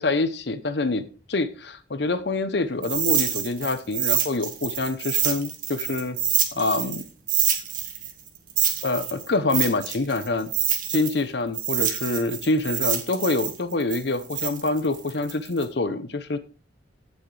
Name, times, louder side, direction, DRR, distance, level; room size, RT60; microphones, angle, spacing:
voice 1, 0.0-6.2 6.5-7.0 8.8-10.5 10.9-16.4, left 2 dB, 65° left, 11 dB, 0.8 m, -26 dB
sound 1, 2.8-7.0 7.3-11.2 11.5-15.6, right 9 dB, 50° right, 1.9 m, -26 dB
15.5 x 6.4 x 3.3 m, 0.37 s
head